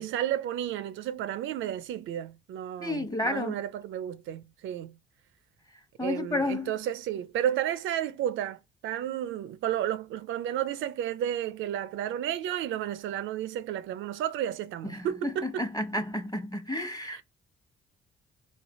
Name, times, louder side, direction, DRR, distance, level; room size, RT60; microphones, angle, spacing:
voice 1, 0.0-4.9 6.0-15.6 17.1-17.2, right 11 dB, 80° right, 0.4 m, -32 dB
voice 2, 2.8-3.6 6.0-6.7 14.8-17.2, left 1 dB, 20° left, 0.9 m, -31 dB
3.2 x 2.8 x 4.1 m
cardioid pair, 90°, 20 cm